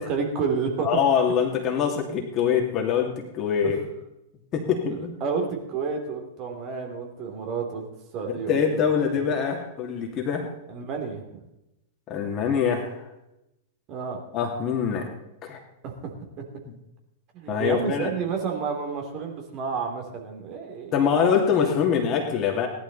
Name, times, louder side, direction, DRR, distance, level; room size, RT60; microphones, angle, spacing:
voice 1, 0.0-0.9 3.6-3.7 4.8-7.9 8.1-8.6 9.2-9.3 10.7-11.4 13.9-14.2 15.8-16.5 17.3-20.9, right 5 dB, 40° right, 2 dB, 3.0 m, -30 dB
voice 2, 0.8-3.8 4.5-5.1 8.5-10.5 12.1-13.0 14.3-15.1 15.4-15.6 16.7-16.8 17.5-18.1 20.9-22.7, left 7 dB, 35° left, 2 dB, 2.5 m, -24 dB
17.0 x 11.5 x 4.1 m, 0.89 s
figure-of-eight pair, 100°, 0 cm